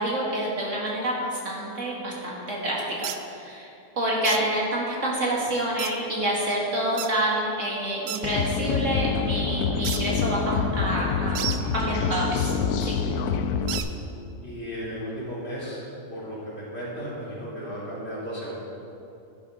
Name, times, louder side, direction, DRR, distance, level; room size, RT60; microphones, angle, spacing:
voice 1, 0.0-3.7 4.0-12.5 12.8-12.9, right 1 dB, 55° right, -4 dB, 2.0 m, -28 dB
sound 1, 3.0-3.2 4.2-4.4 5.8-5.9 7.0-7.1 8.1-8.2 9.8-10.0 11.4-11.6 13.7-13.9, right 11 dB, 75° right, 1.1 m, -31 dB
sound 2, 8.2-13.8, left 6 dB, 80° left, 1.1 m, -26 dB
voice 2, 14.4-15.8 16.1-18.5, equal, 40° left, -8 dB, 3.5 m, -35 dB
11.5 x 11.0 x 4.0 m, 2.7 s
omnidirectional pair, 1.6 m